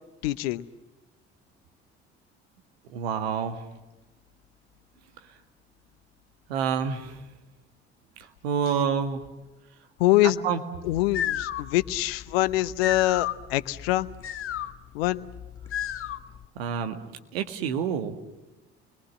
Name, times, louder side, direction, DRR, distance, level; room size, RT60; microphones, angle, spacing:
voice 1, 0.2-0.6 10.0-10.4 10.8-14.1 14.9-15.2, left 17 dB, 65° left, 17 dB, 0.8 m, -24 dB
voice 2, 2.9-3.6 6.5-7.2 8.2-9.2 10.2-10.6 16.6-17.0 17.3-18.1, right 7 dB, 70° right, 7 dB, 1.8 m, -28 dB
sound 1, 10.9-16.5, left 11 dB, 40° left, 1.0 m, -34 dB
29.5 x 22.0 x 7.4 m, 1.1 s
figure-of-eight pair, 50°, 32 cm